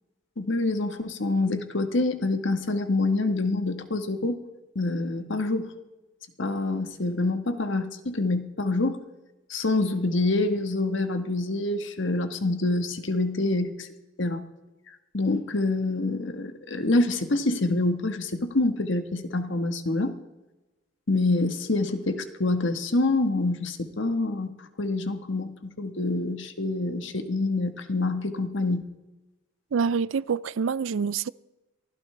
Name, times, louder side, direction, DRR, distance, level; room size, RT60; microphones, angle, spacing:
voice 1, 0.4-4.4 4.7-5.7 6.4-9.0 9.5-13.9 14.2-14.4 15.1-20.1 21.1-28.8, left 2 dB, 60° left, 1.4 m, -26 dB
voice 2, 29.7-31.3, right 5 dB, 70° right, 0.4 m, -26 dB
23.5 x 15.5 x 3.3 m
head